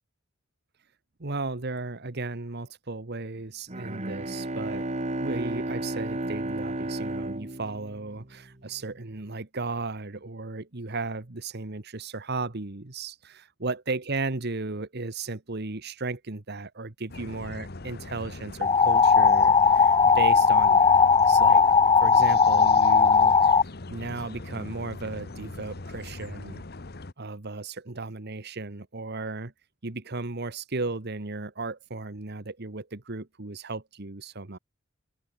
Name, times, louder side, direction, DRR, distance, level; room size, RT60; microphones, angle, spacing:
voice 1, 1.2-4.9 5.2-21.6 22.0-23.6 23.9-26.6 27.2-29.5 29.8-34.6, right 3 dB, 55° right, 1.5 m, -35 dB
Bowed string instrument, 3.7-8.6, right 1 dB, 35° right, 2.0 m, -33 dB
sound 1, 17.1-27.1, left 2 dB, 55° left, 1.3 m, -41 dB
sound 2, 18.6-23.6, left 5 dB, 25° left, 0.5 m, -18 dB
open air
head